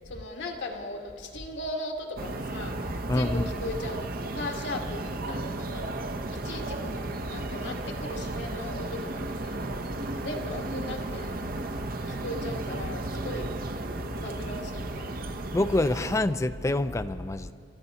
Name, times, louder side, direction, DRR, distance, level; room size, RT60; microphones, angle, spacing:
voice 1, 0.1-5.9 6.3-9.7 10.2-11.3 12.1-13.5 14.2-15.1, left 1 dB, 80° left, 1 dB, 1.8 m, -38 dB
sound 1, 2.2-16.2, right 2 dB, 55° right, 0.8 m, -34 dB
voice 2, 3.1-3.5 15.5-17.5, left 2 dB, 15° left, 11 dB, 0.4 m, -26 dB
25.5 x 13.0 x 4.2 m, 2.2 s
head